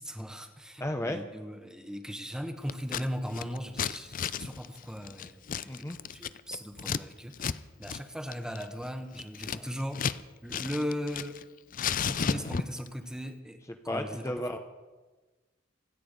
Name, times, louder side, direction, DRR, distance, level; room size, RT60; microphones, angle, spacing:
voice 1, 0.0-5.7 6.1-10.0 10.4-11.4 12.0-13.6 13.9-14.1, equal, 5° right, 7 dB, 1.2 m, -38 dB
voice 2, 0.8-1.2 5.6-6.0 9.5-9.7 12.3-12.6 13.7-14.6, left 1 dB, 15° left, 5 dB, 0.9 m, -34 dB
Scissors, 2.7-3.0 3.3-7.0 7.3-7.6 7.8-8.0 8.3-10.2 10.5-11.4 11.7-12.9, left 7 dB, 45° left, 0.5 m, -33 dB
26.5 x 9.2 x 5.3 m, 1.2 s
head